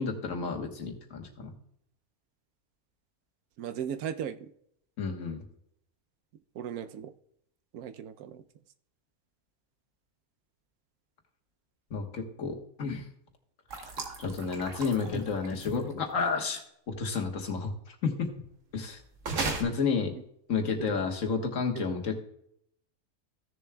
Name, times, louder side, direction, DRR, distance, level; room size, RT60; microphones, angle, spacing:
voice 1, 0.0-1.5 5.0-5.4 11.9-13.1 14.2-16.6 16.9-18.3 18.7-19.0 19.6-20.1 20.5-22.2, left 5 dB, 65° left, 3 dB, 1.6 m, -31 dB
voice 2, 3.6-4.5 6.5-7.1 7.7-8.4 20.1-20.2 20.9-21.1 21.8-21.9, right 9 dB, 85° right, 11 dB, 1.1 m, -37 dB
sound 1, 13.7-15.9 19.2-19.6, right 3 dB, 60° right, 1.6 m, -35 dB
15.5 x 6.9 x 2.2 m, 0.73 s
omnidirectional pair, 1.5 m